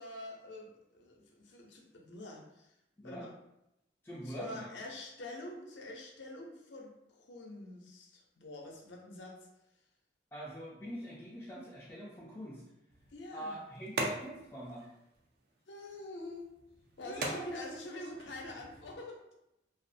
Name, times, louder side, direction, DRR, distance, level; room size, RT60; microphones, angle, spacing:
voice 1, 0.0-2.7 3.0-3.3 4.2-9.5 13.1-13.6 15.7-16.5 17.0-19.2, left 1 dB, 80° left, 0 dB, 0.5 m, -46 dB
voice 2, 4.0-4.7 10.3-12.6 13.3-14.9 17.0-17.8, right 1 dB, 15° left, -8 dB, 0.3 m, -44 dB
sound 1, 12.9-19.0, right 2 dB, 60° right, 0.4 m, -43 dB
2.4 x 2.0 x 2.5 m, 0.86 s
head